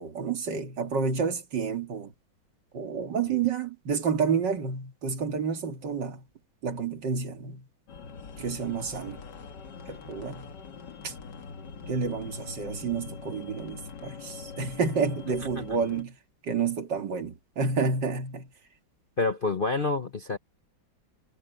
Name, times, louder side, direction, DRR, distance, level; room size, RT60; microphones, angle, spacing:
voice 1, 0.0-2.1 2.7-6.2 6.6-7.7 8.4-9.2 9.9-10.5 11.0-11.1 11.9-16.2 16.4-18.5, right 5 dB, 65° right, 2.6 m, -30 dB
sound 1, 7.9-16.0, left 5 dB, 65° left, 2.2 m, -43 dB
voice 2, 19.2-20.4, left 3 dB, 40° left, 0.9 m, -27 dB
omnidirectional pair, 2.0 m